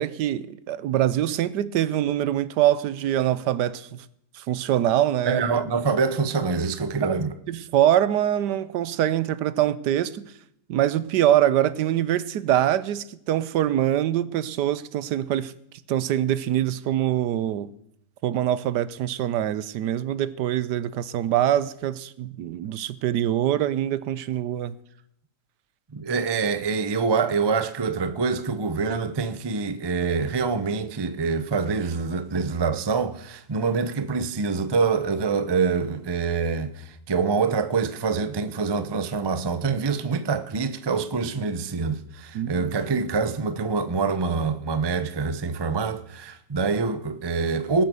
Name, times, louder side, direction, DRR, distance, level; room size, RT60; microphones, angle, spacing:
voice 1, 0.0-4.0 4.3-5.4 7.0-10.2 10.7-15.5 15.9-17.7 18.2-24.7 42.3-42.5, right 12 dB, 80° right, 1.3 m, -24 dB
voice 2, 5.3-7.3 25.9-47.8, right 4 dB, 35° right, 0.4 m, -25 dB
19.0 x 7.7 x 6.9 m
omnidirectional pair, 1.8 m